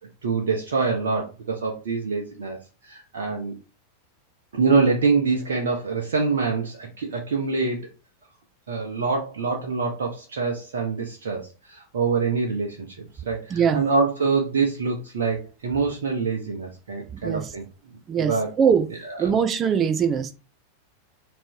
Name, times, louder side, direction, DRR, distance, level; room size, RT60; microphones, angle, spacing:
voice 1, 0.2-3.6 4.5-7.9 8.7-13.0 13.2-17.6 18.2-18.5 19.1-19.2, right 4 dB, 60° right, 1.4 m, -25 dB
voice 2, 13.5-13.8 17.1-17.5 18.1-18.9 19.2-20.3, right 7 dB, 25° right, 0.9 m, -22 dB
7.5 x 3.4 x 4.6 m
figure-of-eight pair, 90°, 0 cm